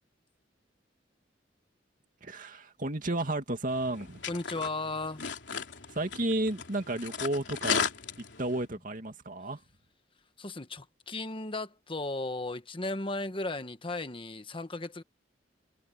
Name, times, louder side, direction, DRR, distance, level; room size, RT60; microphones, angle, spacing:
voice 1, 2.2-4.2 5.9-7.9 8.4-9.6, right 1 dB, 50° right, 2.4 m, -32 dB
sound 1, 3.7-8.7, left 6 dB, 80° left, 3.1 m, -36 dB
voice 2, 4.3-5.2 10.4-15.0, left 2 dB, 30° left, 1.3 m, -35 dB
head